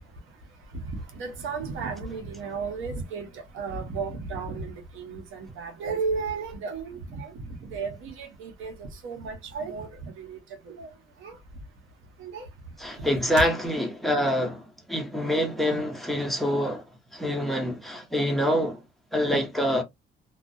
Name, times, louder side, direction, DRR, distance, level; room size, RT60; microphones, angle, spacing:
voice 1, 0.9-10.4 10.7-10.9 11.2-11.4 12.2-12.5, right 4 dB, 85° right, 0.8 m, -34 dB
voice 2, 12.8-16.8 17.1-18.8 19.1-19.8, equal, ahead, 0.8 m, -26 dB
2.3 x 2.1 x 2.6 m
cardioid pair, 90°, 20 cm